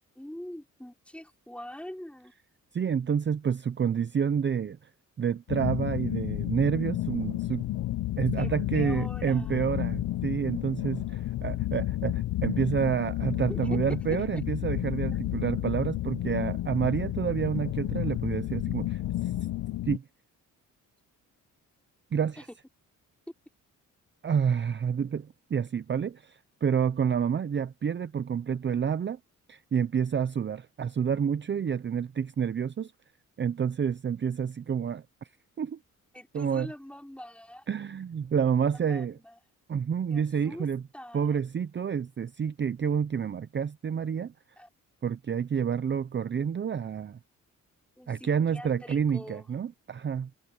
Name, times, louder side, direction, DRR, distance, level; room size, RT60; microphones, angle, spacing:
voice 1, 0.2-2.3 8.4-9.6 13.5-13.6 22.4-22.5 36.1-37.7 38.7-39.3 40.1-40.7 40.9-41.4 44.6-44.7 48.0-49.5, equal, 5° left, 3.6 m, -44 dB
voice 2, 2.7-4.9 5.2-7.7 8.2-19.3 19.9-20.0 22.1-22.5 24.2-29.2 29.5-32.9 33.4-35.0 35.6-35.8 36.3-36.7 37.7-39.2 39.7-40.8 41.1-44.3 45.0-47.2 48.1-50.3, right 7 dB, 35° right, 0.7 m, -29 dB
sound 1, 5.5-20.0, left 15 dB, 70° left, 0.8 m, -31 dB
cardioid pair, 95°, 32 cm